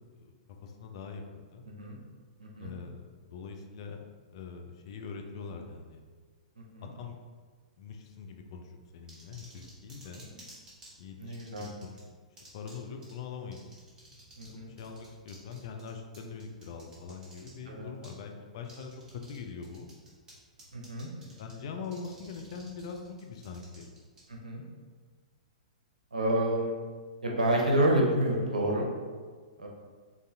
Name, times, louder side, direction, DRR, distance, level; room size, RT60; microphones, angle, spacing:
voice 1, 0.6-1.6 2.6-4.0 4.3-6.0 6.8-7.2 7.8-10.2 11.0-12.0 12.5-13.6 14.7-19.0 19.3-19.9 21.2-23.9 26.5-26.6, left 5 dB, 45° left, 3 dB, 0.4 m, -43 dB
voice 2, 1.7-2.0 2.4-2.7 6.7-6.9 11.2-11.7 14.4-14.7 17.7-17.9 20.7-21.1 24.3-24.6 26.1-26.7 27.2-28.9 29.6-29.7, right 1 dB, 70° right, -1 dB, 0.7 m, -28 dB
sound 1, 9.1-10.9 11.3-12.0 12.4-12.8 13.0-13.1 13.5-14.5 14.8-17.5 18.0-18.2 18.6-19.4 19.6-20.3 20.6-21.5 21.8-24.2, right 1 dB, 20° right, 1.1 m, -53 dB
3.8 x 2.5 x 2.7 m, 1.5 s
figure-of-eight pair, 110°, 4 cm